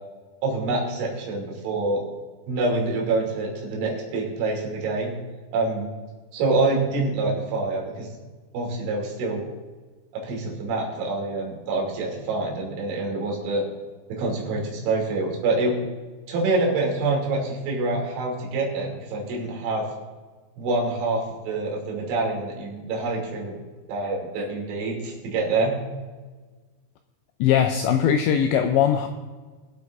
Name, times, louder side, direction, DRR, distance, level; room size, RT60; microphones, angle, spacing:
voice 1, 0.4-2.0 2.5-5.1 5.5-5.9 6.3-8.1 8.5-9.4 10.1-13.6 14.1-15.7 16.3-19.9 20.6-23.5 23.9-25.8, right 3 dB, 70° right, -2 dB, 5.2 m, -26 dB
voice 2, 27.4-29.1, left 9 dB, 90° left, 6 dB, 2.5 m, -20 dB
23.0 x 7.9 x 3.6 m, 1.4 s
omnidirectional pair, 5.9 m